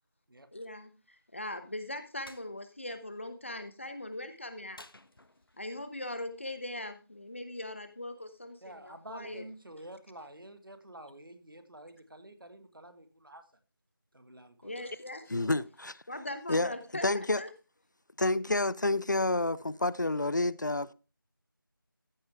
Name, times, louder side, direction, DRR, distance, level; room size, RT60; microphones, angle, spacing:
voice 1, 0.5-4.8 5.6-9.4 14.6-15.3 16.1-17.5, left 1 dB, 35° left, 1.0 m, -40 dB
sound 1, 2.2-2.5 4.7-5.7, left 2 dB, 80° left, 0.9 m, -53 dB
voice 2, 8.6-13.5 14.1-14.9 15.4-15.5, right 1 dB, 70° right, 1.8 m, -49 dB
voice 3, 15.3-16.0 16.5-16.7 17.0-17.4 18.2-20.9, left 2 dB, 55° left, 0.4 m, -29 dB
14.0 x 6.3 x 3.4 m
figure-of-eight pair, 175°, 12 cm